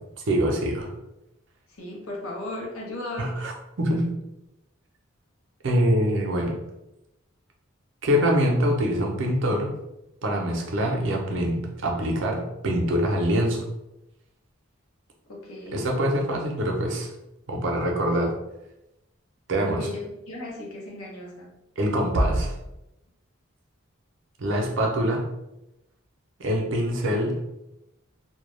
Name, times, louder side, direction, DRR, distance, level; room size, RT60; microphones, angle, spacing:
voice 1, 0.3-0.9 3.2-4.1 5.6-6.5 8.0-9.8 10.2-13.7 15.7-17.1 17.5-18.3 19.5-19.9 21.8-22.5 24.4-25.3 26.4-27.4, equal, 60° right, 1 dB, 0.5 m, -24 dB
voice 2, 1.8-3.5 15.3-15.9 19.7-21.5, left 1 dB, 90° left, -2 dB, 0.8 m, -36 dB
2.2 x 2.1 x 3.0 m, 0.91 s
head